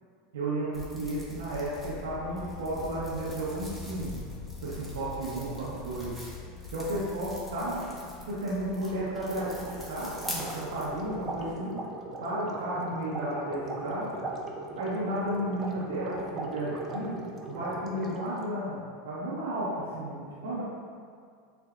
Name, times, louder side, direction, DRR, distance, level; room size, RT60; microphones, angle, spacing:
voice 1, 0.3-4.2 4.6-6.1 6.7-7.8 8.3-11.7 12.2-14.1 14.7-17.2 17.4-18.8 19.0-20.6, right 1 dB, 85° right, -8 dB, 1.0 m, -33 dB
sound 1, 0.7-11.5, left 1 dB, ahead, 1.1 m, -42 dB
sound 2, 9.0-18.4, right 2 dB, 35° right, 0.6 m, -39 dB
6.8 x 2.6 x 2.5 m, 2.2 s
hypercardioid pair, 100°, 0 cm